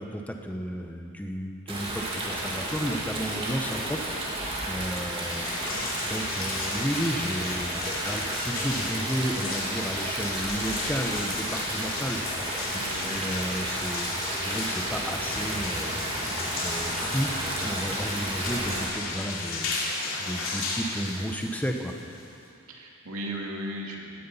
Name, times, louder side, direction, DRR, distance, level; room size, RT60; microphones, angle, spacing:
voice 1, 0.0-5.4 6.0-12.5 12.9-14.1 14.4-17.3 17.6-19.7 20.2-22.0, equal, 5° left, 3 dB, 1.0 m, -33 dB
Stream, 1.7-18.8, right 1 dB, 25° right, 2.6 m, -32 dB
sound 1, 5.2-22.5, left 3 dB, 70° left, 2.7 m, -34 dB
voice 2, 5.3-5.8 12.8-13.1 22.7-24.3, right 1 dB, 90° right, -1 dB, 2.4 m, -37 dB
17.0 x 12.5 x 5.6 m, 2.6 s
head